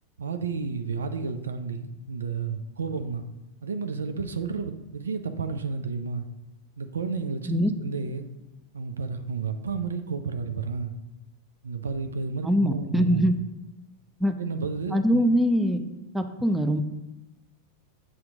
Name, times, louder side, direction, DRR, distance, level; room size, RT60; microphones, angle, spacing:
voice 1, 0.2-3.3 3.6-6.3 6.8-8.3 8.7-10.9 11.6-13.3 14.4-15.2, right 5 dB, 70° right, 8 dB, 0.5 m, -31 dB
voice 2, 12.4-13.3 14.2-14.3 14.9-15.8 16.1-16.8, equal, 5° right, 8 dB, 0.6 m, -22 dB
7.7 x 5.9 x 3.6 m, 0.98 s
figure-of-eight pair, 90°, 0 cm